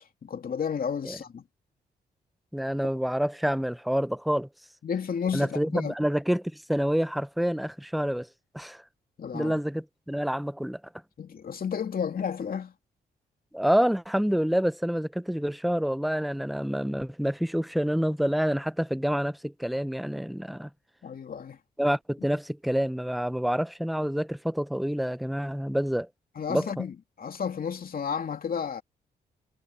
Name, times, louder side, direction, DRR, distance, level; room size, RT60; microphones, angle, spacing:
voice 1, 0.0-1.4 4.8-5.9 9.2-9.6 11.2-12.7 21.0-21.6 26.4-28.8, left 7 dB, 55° left, 2.7 m, -32 dB
voice 2, 2.5-4.5 5.3-8.3 8.5-8.8 9.3-10.8 13.5-20.7 21.8-26.1 26.5-26.8, equal, ahead, 0.7 m, -27 dB
supercardioid pair, 55°, 18 cm